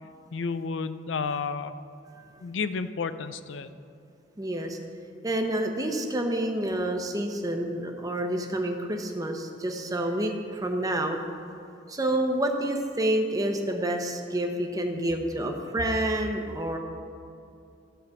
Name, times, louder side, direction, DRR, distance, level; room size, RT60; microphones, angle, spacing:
voice 1, 0.3-1.8 2.4-3.7, left 5 dB, 75° left, 12 dB, 0.5 m, -31 dB
voice 2, 4.4-4.8 5.2-11.2 11.9-16.8, right 1 dB, 20° right, 3 dB, 0.9 m, -28 dB
13.5 x 5.1 x 7.1 m, 2.6 s
head